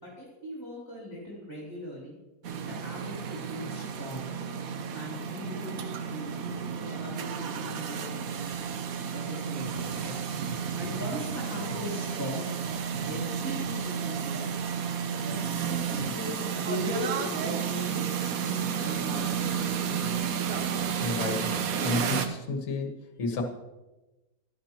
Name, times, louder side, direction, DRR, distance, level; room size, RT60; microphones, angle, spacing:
voice 1, 0.0-2.2 2.7-3.2 3.5-4.2 4.9-8.1 9.1-10.2 10.7-12.5 13.0-14.5 15.2-20.2, left 1 dB, 10° left, -5 dB, 2.7 m, -39 dB
sound 1, 2.4-22.3, right 7 dB, 70° right, 1.2 m, -32 dB
voice 2, 21.0-22.9 23.2-23.4, left 3 dB, 60° left, 3 dB, 1.6 m, -31 dB
11.5 x 11.5 x 2.9 m, 1.1 s
omnidirectional pair, 1.6 m